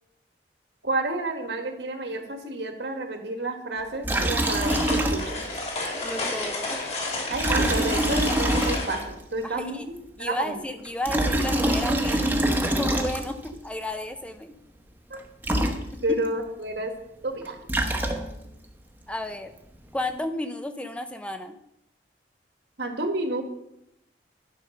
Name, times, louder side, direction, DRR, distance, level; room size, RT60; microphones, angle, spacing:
voice 1, 0.8-5.4 7.3-10.6 15.1-15.2 16.0-16.9 17.2-17.6 22.8-23.4, right 2 dB, 70° right, 5 dB, 1.6 m, -30 dB
Liquid, 4.0-5.6 5.8-5.9 7.3-9.2 10.8-13.5 15.1-15.2 15.4-16.3 17.4-18.5, right 1 dB, 10° right, 0.9 m, -25 dB
sound 1, 4.1-9.0, left 2 dB, 35° left, 2.5 m, -32 dB
voice 2, 6.0-6.8 9.4-9.8 10.2-14.5 16.1-16.2 19.1-19.5 19.9-21.5, left 1 dB, 5° left, 8 dB, 0.5 m, -33 dB
11.0 x 5.3 x 6.5 m, 0.82 s
head